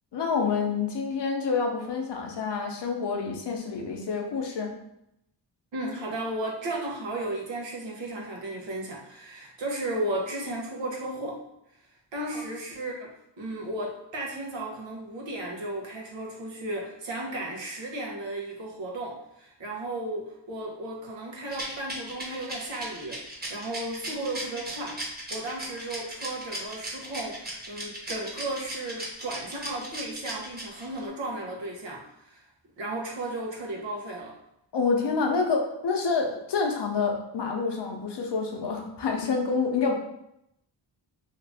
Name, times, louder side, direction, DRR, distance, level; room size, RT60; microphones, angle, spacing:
voice 1, 0.1-4.7 12.3-12.4 34.7-39.9, left 4 dB, 65° left, 2 dB, 0.8 m, -27 dB
voice 2, 5.7-11.4 12.1-23.2 23.5-32.5 32.8-34.4, right 1 dB, 75° right, -1 dB, 0.9 m, -34 dB
Rattle, 21.5-31.0, right 1 dB, 20° right, 1.0 m, -37 dB
2.8 x 2.5 x 3.4 m, 0.79 s
cardioid pair, 85°, 44 cm